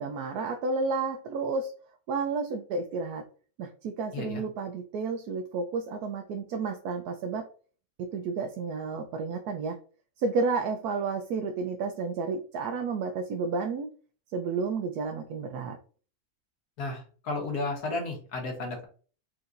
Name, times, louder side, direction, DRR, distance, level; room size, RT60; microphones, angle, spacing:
voice 1, 0.0-1.7 2.1-3.2 3.6-7.5 8.0-9.8 10.2-13.9 14.3-15.8, right 4 dB, 90° right, 5 dB, 1.1 m, -31 dB
voice 2, 16.8-18.8, left 2 dB, 85° left, 1 dB, 1.9 m, -33 dB
4.3 x 3.7 x 2.5 m, 0.39 s
omnidirectional pair, 1.6 m